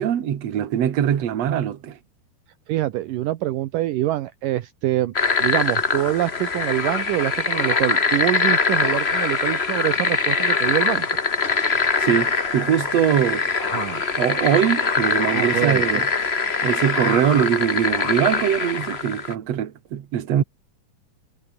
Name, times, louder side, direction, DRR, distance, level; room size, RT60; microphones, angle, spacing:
voice 1, 0.0-2.0 12.0-13.5 14.1-16.1 16.6-20.4, right 10 dB, 50° right, 2.7 m, -22 dB
voice 2, 2.7-5.1 5.4-11.1 13.7-14.0 15.3-16.0, right 15 dB, 75° right, 2.5 m, -25 dB
sound 1, 5.1-19.3, left 4 dB, 55° left, 0.7 m, -23 dB
omnidirectional pair, 4.1 m